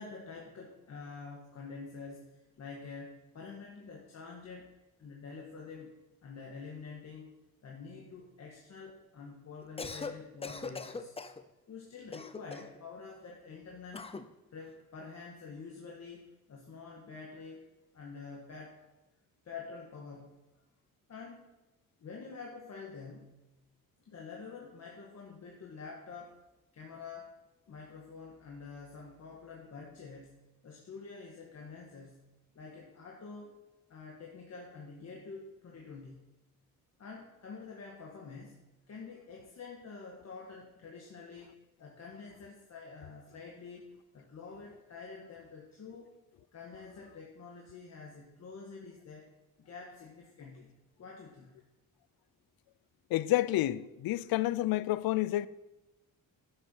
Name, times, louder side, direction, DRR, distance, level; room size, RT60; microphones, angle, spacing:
voice 1, 0.0-4.7 5.0-5.9 6.2-7.3 7.6-11.1 11.7-14.1 14.5-17.6 17.9-18.8 19.4-20.4 21.1-21.5 22.0-23.4 24.1-26.4 26.7-27.3 27.7-33.6 33.9-36.3 37.0-46.1 46.5-49.3 49.6-51.6 54.2-54.3, left 4 dB, 50° left, 1.6 m, -47 dB
Cough, 9.6-10.2 10.4-11.4 12.1-12.8 13.9-14.3, left 4 dB, 15° left, 0.6 m, -40 dB
voice 2, 53.1-55.5, left 15 dB, 85° left, 0.6 m, -29 dB
11.5 x 6.8 x 6.3 m
cardioid pair, 125°, 35 cm